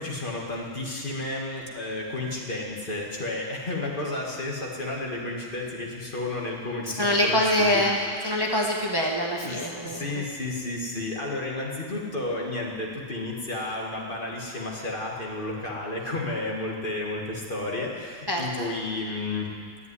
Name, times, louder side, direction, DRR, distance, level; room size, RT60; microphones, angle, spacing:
voice 1, 0.0-8.1 9.4-19.5, left 2 dB, 45° left, -2 dB, 2.2 m, -32 dB
voice 2, 7.0-8.0 8.2-10.2 18.3-18.7, left 1 dB, 20° right, -1 dB, 1.3 m, -24 dB
13.0 x 8.4 x 9.8 m, 2.2 s
omnidirectional pair, 1.3 m